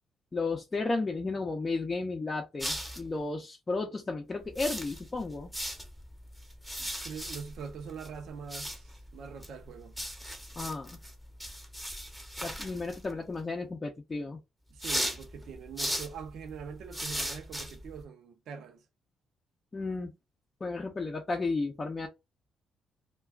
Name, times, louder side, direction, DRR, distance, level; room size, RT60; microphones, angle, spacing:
voice 1, 0.3-5.5 10.6-11.0 12.4-14.4 19.7-20.1 20.6-22.1, left 3 dB, 30° left, 0.5 m, -33 dB
sound 1, 2.6-3.2 4.4-13.3 14.8-18.0, equal, 5° right, 0.7 m, -39 dB
voice 2, 6.8-10.0 14.7-18.8, right 6 dB, 75° right, 0.6 m, -43 dB
2.3 x 2.2 x 3.4 m
cardioid pair, 90°, 0 cm